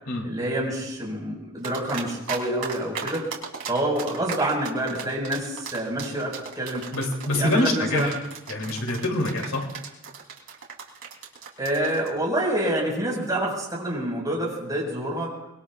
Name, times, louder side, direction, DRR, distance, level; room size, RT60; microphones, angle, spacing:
voice 1, 0.2-3.3 3.7-6.9 7.3-8.1 11.6-15.3, right 1 dB, 20° right, -2 dB, 5.2 m, -27 dB
sound 1, 1.6-2.4 2.6-12.1, right 6 dB, 75° right, 3.3 m, -35 dB
voice 2, 6.9-8.2 8.5-9.7, left 1 dB, 90° left, 1 dB, 3.0 m, -25 dB
25.0 x 21.5 x 2.4 m, 0.93 s
head